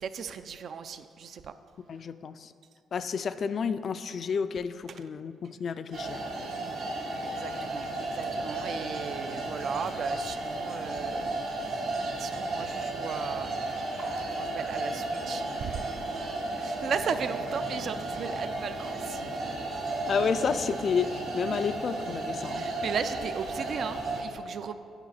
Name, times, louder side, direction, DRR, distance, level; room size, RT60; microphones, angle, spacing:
voice 1, 0.0-1.5 6.5-6.7 7.2-11.3 11.5-11.6 12.2-13.6 14.4-15.8 16.6-19.2 22.5-24.8, right 6 dB, 60° right, 10 dB, 0.4 m, -36 dB
voice 2, 1.9-2.5 2.9-6.2 20.1-22.6, left 6 dB, 50° left, 12 dB, 0.3 m, -30 dB
sound 1, 5.9-24.2, right 2 dB, 90° right, 2.1 m, -33 dB
9.0 x 5.0 x 5.5 m, 2.5 s
cardioid pair, 90°, 0 cm